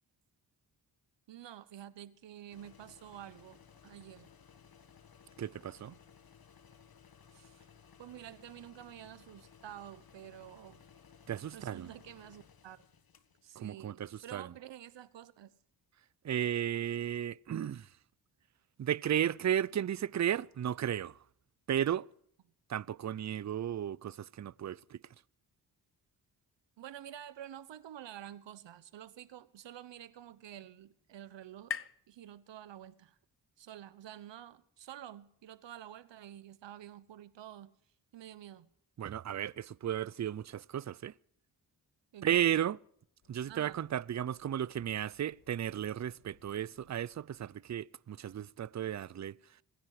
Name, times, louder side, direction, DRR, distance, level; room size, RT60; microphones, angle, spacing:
voice 1, 1.3-4.3 7.3-7.7 8.0-10.8 11.5-12.8 13.4-15.5 26.8-33.2 33.6-37.7 38.1-38.7 42.1-42.6 43.5-43.8, right 11 dB, 80° right, 1.1 m, -49 dB
sound 1, 2.5-13.6, left 7 dB, 55° left, 1.7 m, -59 dB
voice 2, 5.4-6.0 11.3-11.9 13.6-14.5 16.2-17.9 18.8-21.2 21.7-22.1 22.7-25.0 39.0-41.1 42.2-42.8 43.3-49.4, right 10 dB, 40° right, 0.6 m, -34 dB
sound 2, 29.4-33.1, left 7 dB, 30° left, 0.7 m, -47 dB
sound 3, 43.2-47.7, left 5 dB, 70° left, 2.2 m, -69 dB
25.5 x 10.5 x 4.9 m
supercardioid pair, 50°, 43 cm